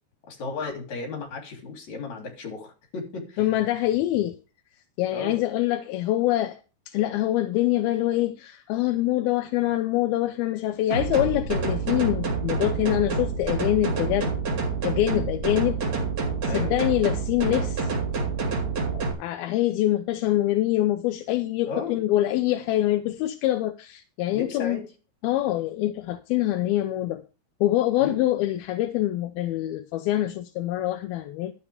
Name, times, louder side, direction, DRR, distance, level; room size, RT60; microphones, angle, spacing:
voice 1, 0.3-3.4 5.1-5.4 14.0-14.3 15.1-15.3 16.4-16.7 21.7-22.0 24.3-24.8 28.0-28.1, left 4 dB, 50° left, 4.4 m, -35 dB
voice 2, 3.4-4.4 5.0-6.6 6.9-14.3 14.8-15.8 16.5-17.9 18.9-24.8 25.2-27.2 27.6-31.5, left 14 dB, 85° left, 2.6 m, -25 dB
sound 1, 10.9-19.1, right 4 dB, 50° right, 3.5 m, -27 dB
12.0 x 9.5 x 3.5 m
omnidirectional pair, 4.4 m